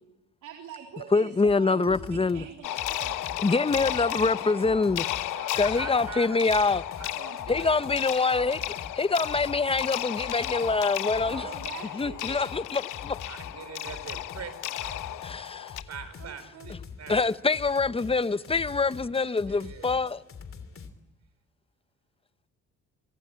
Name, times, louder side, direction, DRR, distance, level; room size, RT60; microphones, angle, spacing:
voice 1, 0.4-3.3 7.1-7.6 8.2-8.7 11.2-12.4 13.6-14.0 16.2-16.7, right 8 dB, 75° right, 3.7 m, -44 dB
voice 2, 1.1-2.4 3.4-5.1 5.5-6.8 7.5-8.6 9.0-11.5 11.9-13.2 15.2-15.7 17.1-20.2, left 4 dB, 20° left, 0.9 m, -25 dB
sound 1, 1.5-1.6 1.8-2.5 2.8-20.9, left 5 dB, 45° left, 3.1 m, -45 dB
sound 2, 2.6-15.8, left 14 dB, 90° left, 0.9 m, -34 dB
voice 3, 4.0-4.7 5.0-7.7 13.2-14.5 14.8-15.2 15.9-17.3 19.5-19.9, right 7 dB, 60° right, 4.7 m, -43 dB
25.5 x 23.5 x 8.8 m
cardioid pair, 90°, 30 cm